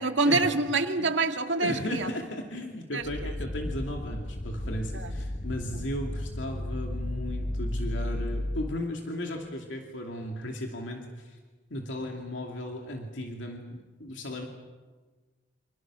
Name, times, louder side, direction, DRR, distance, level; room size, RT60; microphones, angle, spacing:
voice 1, 0.0-2.1 2.9-3.0 4.9-5.1, right 3 dB, 75° right, 2.0 m, -26 dB
voice 2, 1.6-11.4 11.7-14.5, left 1 dB, 75° left, 2.7 m, -36 dB
sound 1, 3.0-8.8, left 1 dB, 35° left, 0.9 m, -33 dB
28.5 x 27.0 x 6.3 m
head